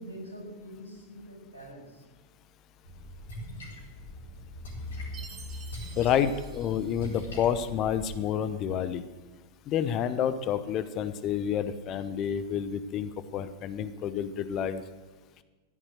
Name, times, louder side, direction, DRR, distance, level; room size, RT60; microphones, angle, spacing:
voice 1, 0.0-2.0, equal, 85° right, -2 dB, 6.5 m, -44 dB
Splash splatter, 2.8-8.1, left 1 dB, 65° left, 4.1 m, -41 dB
Chime, 5.1-7.6, right 6 dB, 30° right, 1.6 m, -50 dB
voice 2, 6.0-9.0 9.7-14.8, left 9 dB, 35° left, 12 dB, 0.9 m, -29 dB
15.0 x 11.0 x 6.4 m, 1.2 s
figure-of-eight pair, 90°, 0 cm